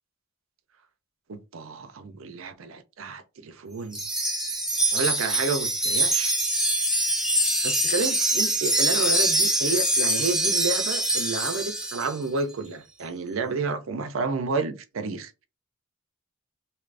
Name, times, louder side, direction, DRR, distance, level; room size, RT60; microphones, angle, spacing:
voice 1, 1.3-4.0 4.9-6.4 7.6-15.5, right 4 dB, 70° right, 0.5 m, -30 dB
Wind chime, 3.9-12.1, right 1 dB, 5° right, 0.4 m, -24 dB
2.7 x 2.5 x 3.3 m
head